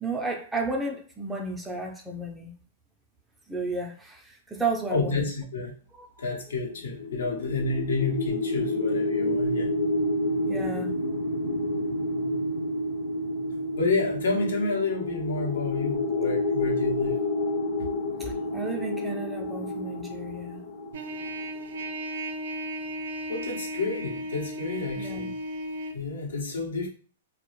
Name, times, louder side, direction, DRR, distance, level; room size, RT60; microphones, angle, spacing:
voice 1, 0.0-2.5 3.5-5.3 5.9-6.1 10.5-10.9 18.2-20.6 25.0-25.3, right 3 dB, 5° right, 2 dB, 0.4 m, -33 dB
voice 2, 4.9-5.8 6.2-9.7 13.8-17.2 17.8-17.9 23.3-25.4 25.9-26.9, left 3 dB, 90° left, 1 dB, 0.7 m, -29 dB
sound 1, 6.8-21.8, left 1 dB, 45° left, 0.5 m, -29 dB
Trumpet, 20.9-26.0, equal, 75° right, 0.4 m, -35 dB
2.0 x 2.0 x 3.0 m, 0.40 s
hypercardioid pair, 155°, 0 cm